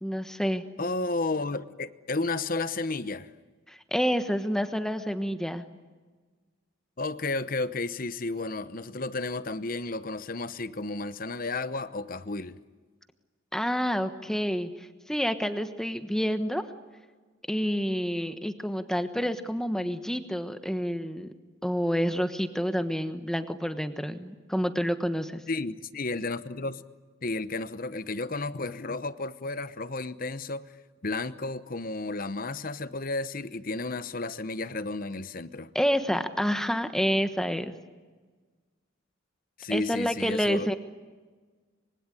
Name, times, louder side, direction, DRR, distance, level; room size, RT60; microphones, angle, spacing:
voice 1, 0.0-0.6 3.7-5.6 13.5-16.6 17.5-21.3 21.6-25.4 35.7-37.7 39.7-40.7, equal, ahead, 1.2 m, -28 dB
voice 2, 0.8-3.3 7.0-12.6 25.5-26.8 27.2-30.7 31.0-35.7 39.6-40.7, left 3 dB, 40° left, 0.9 m, -32 dB
26.0 x 23.5 x 9.9 m
head